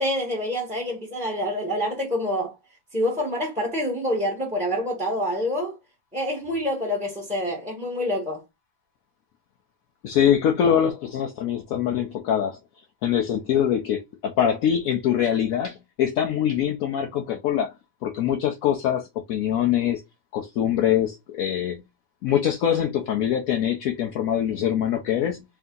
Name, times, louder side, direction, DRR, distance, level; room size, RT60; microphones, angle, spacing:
voice 1, 0.0-2.5 2.9-5.7 6.1-8.4, left 1 dB, 5° right, 0.8 m, -27 dB
voice 2, 10.0-12.6 13.0-17.7 18.0-20.0 20.3-21.8 22.2-25.4, left 9 dB, 65° left, 0.9 m, -23 dB
3.4 x 2.7 x 3.6 m
omnidirectional pair, 1.9 m